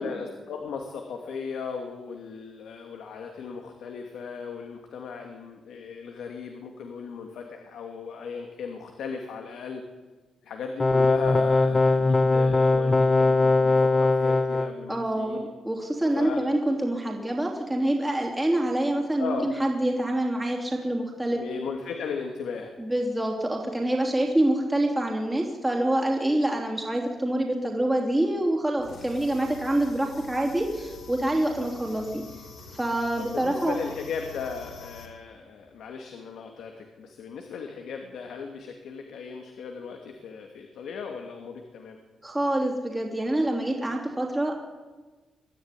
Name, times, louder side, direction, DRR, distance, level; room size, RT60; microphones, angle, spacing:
voice 1, 0.0-9.8 10.4-15.4 16.1-16.4 19.2-19.5 21.3-22.7 33.2-42.0, left 5 dB, 75° left, 4 dB, 2.6 m, -37 dB
sound 1, 10.8-14.7, left 3 dB, 15° left, 0.9 m, -20 dB
voice 2, 14.9-21.4 22.8-32.2 32.7-33.8 42.2-44.6, right 1 dB, 10° right, -1 dB, 3.2 m, -26 dB
sound 2, 28.8-35.1, left 4 dB, 50° left, 4.3 m, -46 dB
23.0 x 14.0 x 10.0 m, 1.3 s
cardioid pair, 160°, 0 cm